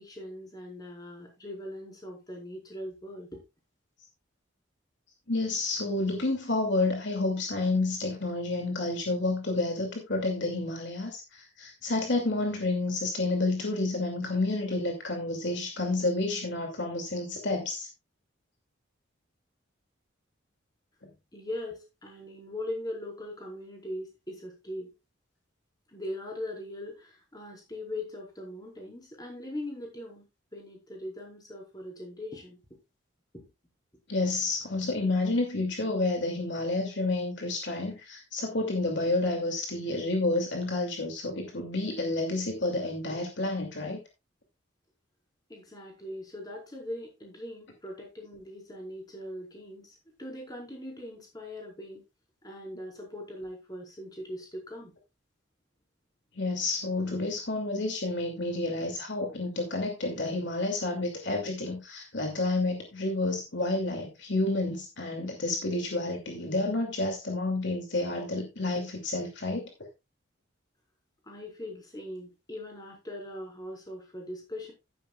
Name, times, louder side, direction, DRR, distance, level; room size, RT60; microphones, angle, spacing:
voice 1, 0.0-3.4 21.3-24.9 25.9-30.2 30.5-32.6 33.3-33.5 45.5-52.0 52.4-54.9 71.2-74.7, left 1 dB, 20° left, 4.7 m, -40 dB
voice 2, 5.3-17.9 34.1-44.0 56.3-69.7, left 2 dB, 60° left, 2.6 m, -30 dB
13.0 x 10.5 x 2.4 m
head